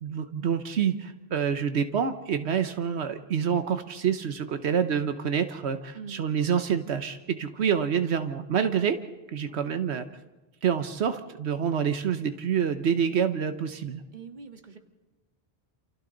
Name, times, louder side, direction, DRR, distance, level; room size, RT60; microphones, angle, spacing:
voice 1, 0.0-9.0 9.3-10.0 10.6-14.0, right 7 dB, 85° right, 8 dB, 1.2 m, -27 dB
voice 2, 5.9-6.3 9.5-9.7 14.1-14.8, right 6 dB, 45° right, 5 dB, 1.9 m, -44 dB
28.5 x 28.5 x 3.9 m, 1.2 s
omnidirectional pair, 1.1 m